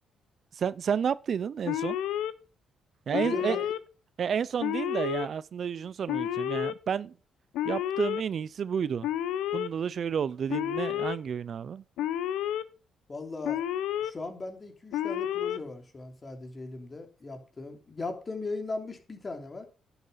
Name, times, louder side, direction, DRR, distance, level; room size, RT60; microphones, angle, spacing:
voice 1, 0.6-2.0 3.1-3.6 4.2-7.1 7.7-9.1 9.5-11.8, right 7 dB, 55° right, 0.5 m, -31 dB
Alarm, 1.7-2.3 3.1-3.8 4.6-5.3 6.1-6.7 7.5-8.2 9.0-9.7 10.5-11.2 12.0-12.6 13.4-14.1 14.9-15.6, left 11 dB, 90° left, 0.8 m, -30 dB
voice 2, 3.1-3.7 13.1-13.6 14.0-19.7, left 3 dB, 30° left, 3.0 m, -38 dB
10.5 x 6.9 x 5.7 m
cardioid pair, 90°, 0 cm